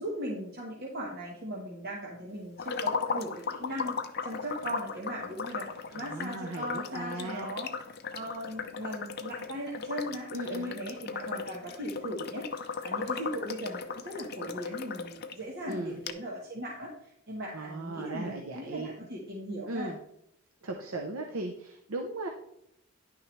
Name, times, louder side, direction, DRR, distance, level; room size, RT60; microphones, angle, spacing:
voice 1, 0.0-4.0 4.2-7.7 8.1-19.9, right 1 dB, 45° right, -3 dB, 1.3 m, -38 dB
sound 1, 2.6-15.3 15.7-15.8 16.1-16.2, left 5 dB, 45° left, 0.6 m, -37 dB
voice 2, 5.9-7.5 10.3-10.8 15.6-16.0 17.5-18.9 19.7-20.0 20.6-22.3, right 2 dB, 75° right, 3 dB, 0.8 m, -37 dB
10.5 x 6.0 x 3.2 m, 0.75 s
head